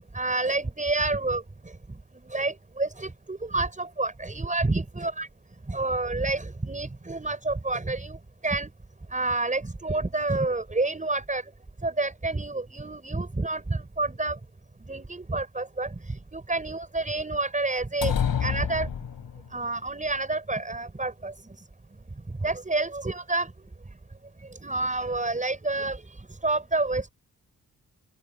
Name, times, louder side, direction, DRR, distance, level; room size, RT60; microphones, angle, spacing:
voice 1, 0.1-1.4 2.3-5.3 5.7-8.2 8.4-8.7 9.1-11.4 11.8-14.4 14.9-18.1 18.4-18.9 19.5-21.3 22.4-23.5 24.6-27.1, right 2 dB, 20° right, 6.7 m, -28 dB
sound 1, 18.0-19.6, left 8 dB, 75° left, 4.6 m, -28 dB
open air
cardioid pair, 95°, 35 cm